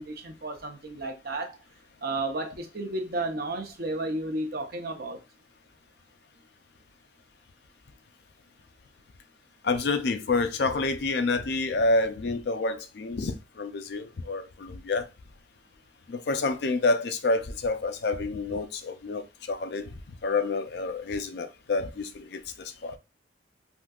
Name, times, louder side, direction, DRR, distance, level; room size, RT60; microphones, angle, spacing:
voice 1, 0.0-1.6 2.0-5.2, right 2 dB, 55° right, 0.7 m, -32 dB
voice 2, 9.6-15.1 16.1-19.9 20.2-23.0, left 3 dB, 60° left, 0.4 m, -28 dB
3.6 x 2.7 x 2.3 m
head